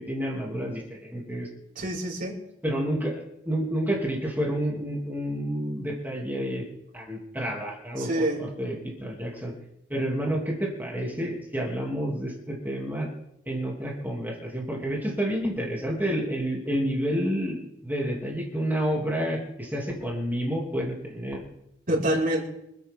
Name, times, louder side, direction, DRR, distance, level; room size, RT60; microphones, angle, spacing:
voice 1, 0.0-1.5 2.6-6.6 6.9-8.1 8.4-9.5 9.9-13.1 13.5-21.4, equal, 10° right, -2 dB, 3.0 m, -29 dB
voice 2, 1.7-2.4 8.0-8.4 21.9-22.4, right 1 dB, 50° right, -4 dB, 4.6 m, -26 dB
26.5 x 9.0 x 3.8 m, 0.82 s
head